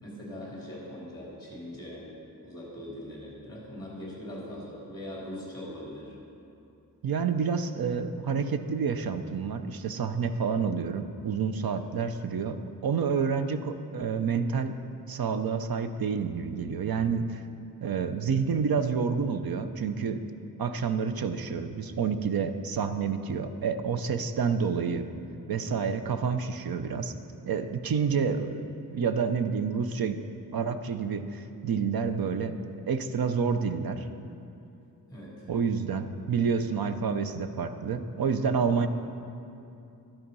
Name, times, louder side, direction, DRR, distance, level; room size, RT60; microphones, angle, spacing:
voice 1, 0.0-2.1 2.4-6.2 11.7-11.8 35.1-35.5, left 1 dB, 10° left, -5 dB, 3.5 m, -41 dB
voice 2, 7.0-14.8 15.1-17.4 17.8-20.2 20.6-25.1 25.5-27.1 27.5-30.2 30.5-32.6 32.9-34.0 35.5-38.9, right 6 dB, 85° right, 9 dB, 0.8 m, -29 dB
12.0 x 11.5 x 5.4 m, 2.7 s
wide cardioid pair, 140°, 35 cm